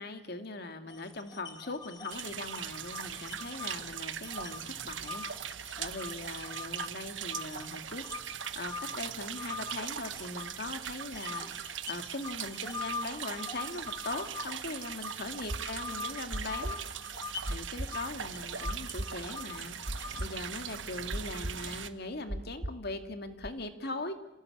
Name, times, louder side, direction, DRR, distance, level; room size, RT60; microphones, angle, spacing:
voice 1, 0.0-16.8 17.5-24.1, left 2 dB, 60° left, 7 dB, 2.3 m, -41 dB
sound 1, 0.9-6.9 7.3-10.7 11.1-20.5, left 4 dB, 20° left, 1.7 m, -44 dB
sound 2, 2.1-21.9, right 9 dB, 85° right, 1.3 m, -40 dB
sound 3, 15.4-23.5, right 1 dB, 45° right, 1.4 m, -38 dB
27.5 x 17.5 x 8.7 m, 0.98 s
head